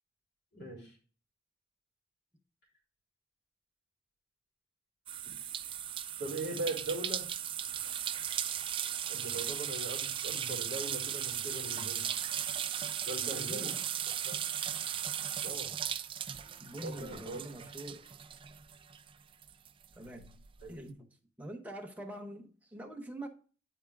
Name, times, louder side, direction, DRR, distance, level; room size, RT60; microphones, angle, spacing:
voice 1, 0.5-1.0 6.2-7.3 9.1-12.1 13.0-13.7 14.2-14.4 15.4-15.8 16.8-17.4 20.6-20.7, right 2 dB, 60° left, 3.3 m, -40 dB
sound 1, 5.1-19.1 19.4-20.6, right 9 dB, 25° right, 0.3 m, -37 dB
voice 2, 13.2-13.9 16.6-18.1 19.9-21.1 21.4-23.3, right 1 dB, 10° right, 1.0 m, -45 dB
9.3 x 4.5 x 3.6 m
head